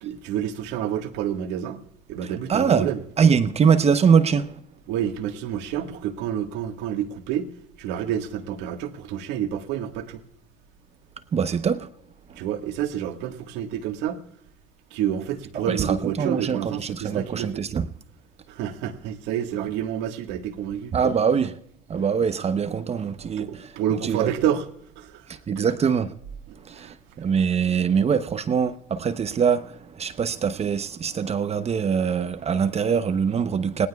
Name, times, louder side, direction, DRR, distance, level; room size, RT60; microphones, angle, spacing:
voice 1, 0.0-1.8 2.1-3.0 4.9-7.5 7.8-10.2 12.4-14.2 14.9-17.6 18.5-20.9 23.4-24.6 25.0-25.2 26.7-26.9 27.9-28.0, right 10 dB, 75° right, 1.6 m, -29 dB
voice 2, 2.2-2.9 3.2-4.6 11.3-11.9 12.3-12.4 15.7-17.9 20.9-21.6 21.9-24.3 25.3-26.1 26.5-33.9, right 6 dB, 35° right, 0.9 m, -23 dB
29.5 x 18.0 x 2.4 m
supercardioid pair, 85°, 19 cm